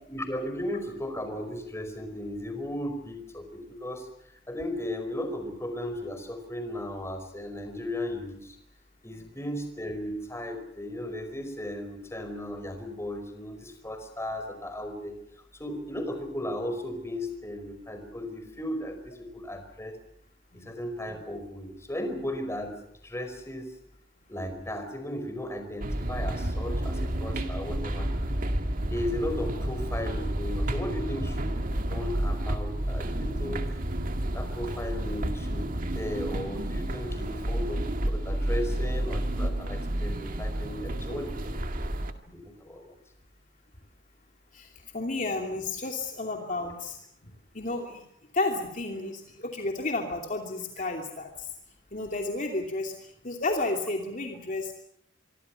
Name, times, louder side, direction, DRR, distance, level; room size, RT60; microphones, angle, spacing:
voice 1, 0.1-4.1 4.5-8.6 9.0-15.1 15.5-20.0 20.5-22.7 23.0-23.7 24.3-28.1 28.8-33.6 34.3-41.6 42.3-42.9, left 1 dB, 15° left, 7 dB, 4.9 m, -36 dB
sound 1, 25.8-42.1, right 1 dB, 50° right, 2.0 m, -30 dB
voice 2, 44.5-47.0 47.2-48.0 48.3-51.5 51.9-54.7, left 2 dB, 45° left, 2 dB, 2.8 m, -32 dB
25.5 x 25.0 x 5.9 m, 0.71 s
head